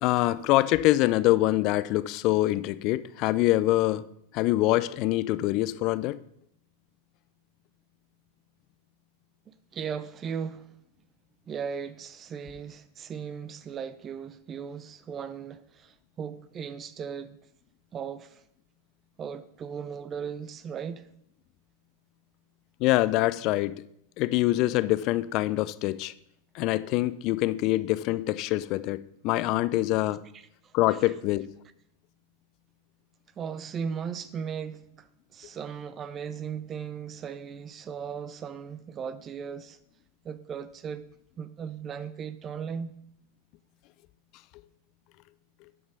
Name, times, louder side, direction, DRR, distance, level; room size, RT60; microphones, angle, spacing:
voice 1, 0.0-4.0 4.3-6.2 22.8-23.8 24.2-26.1 26.5-30.2 30.7-31.5, left 17 dB, 50° left, 0.4 m, -25 dB
voice 2, 9.5-10.7 11.5-17.4 17.9-18.4 19.2-21.1 30.3-31.0 33.4-39.8 40.2-41.1 41.4-42.9, right 7 dB, 30° right, 0.4 m, -37 dB
6.8 x 5.2 x 5.2 m
hypercardioid pair, 105°, 0 cm